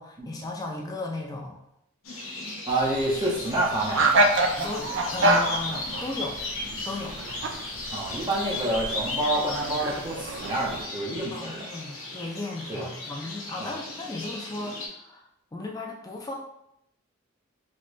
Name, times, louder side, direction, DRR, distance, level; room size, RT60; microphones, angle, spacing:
voice 1, 0.0-1.6 4.6-6.4 6.8-7.2 11.3-15.2 15.5-16.3, left 2 dB, 20° left, 0 dB, 0.4 m, -35 dB
sound 1, 2.0-14.9, left 2 dB, 75° left, 0.6 m, -36 dB
voice 2, 2.7-4.1 7.9-11.6 12.7-12.9 13.6-13.7, right 1 dB, 20° right, -3 dB, 0.6 m, -28 dB
sound 2, 2.7-10.9, right 1 dB, 60° right, 0.4 m, -28 dB
3.2 x 2.8 x 2.5 m, 0.77 s
head